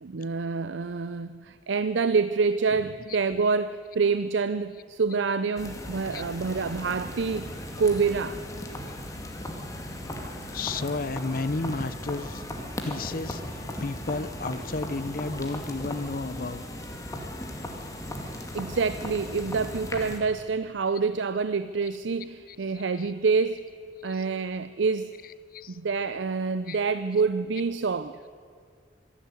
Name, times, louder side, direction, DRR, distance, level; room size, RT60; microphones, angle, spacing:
voice 1, 0.0-8.4 18.2-23.6 24.0-25.1 25.7-28.2, right 4 dB, 90° right, 13 dB, 0.6 m, -27 dB
sound 1, 5.6-20.2, left 1 dB, 20° left, 2.2 m, -37 dB
voice 2, 10.5-12.4 12.8-16.6 23.0-23.1 24.1-24.3 25.2-25.8 26.7-26.8, left 3 dB, 50° left, 16 dB, 0.6 m, -32 dB
25.5 x 11.5 x 9.6 m, 2.1 s
head